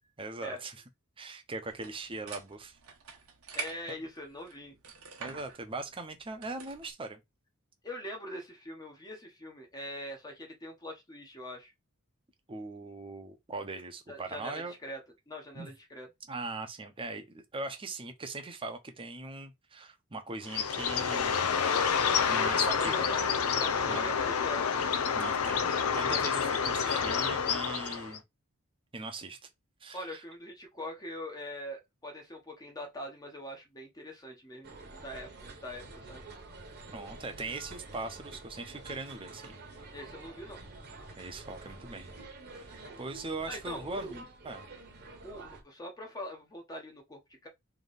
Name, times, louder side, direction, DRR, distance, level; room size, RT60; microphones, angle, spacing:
voice 1, 0.2-0.8 1.2-2.8 5.2-7.2 12.5-14.7 15.5-15.7 16.3-21.3 22.3-23.3 23.9-24.1 25.1-28.2 28.9-29.4 29.8-30.2 36.9-39.6 41.2-42.1 42.5-44.7, right 3 dB, 25° right, 0.7 m, -40 dB
sound 1, 1.7-6.9, right 6 dB, 75° right, 1.1 m, -46 dB
voice 2, 3.5-4.8 7.8-11.7 14.1-15.0 15.3-16.1 22.8-23.3 23.5-24.6 29.9-36.2 39.9-40.6 43.5-44.2 45.2-47.5, equal, 20° left, 0.9 m, -42 dB
Bird, 20.5-28.2, left 6 dB, 75° left, 0.6 m, -28 dB
sound 2, 34.6-45.6, right 2 dB, 50° right, 1.1 m, -48 dB
3.4 x 2.9 x 4.0 m
head